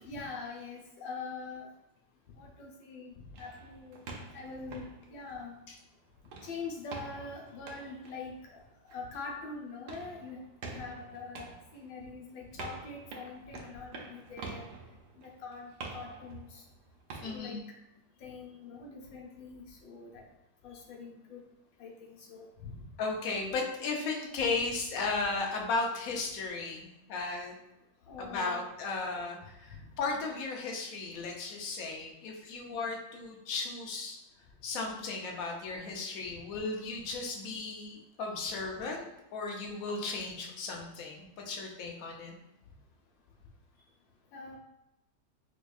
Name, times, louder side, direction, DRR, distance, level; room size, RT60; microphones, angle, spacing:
voice 1, 0.0-1.7 2.4-4.0 4.3-5.6 6.4-8.6 8.9-10.4 10.7-14.6 15.2-16.6 17.2-17.6 18.2-20.2 20.6-21.4 21.8-22.8 28.1-28.6 29.7-29.8 44.3-44.6, left 4 dB, 85° left, 0 dB, 1.4 m, -44 dB
sound 1, 3.3-5.9 6.2-17.4, right 3 dB, 75° right, 1.2 m, -47 dB
voice 2, 17.2-17.6 23.0-27.5 28.2-34.2 34.6-39.0 39.3-42.3, left 3 dB, 65° left, 0 dB, 0.9 m, -35 dB
5.1 x 2.2 x 2.3 m, 0.86 s
omnidirectional pair, 2.0 m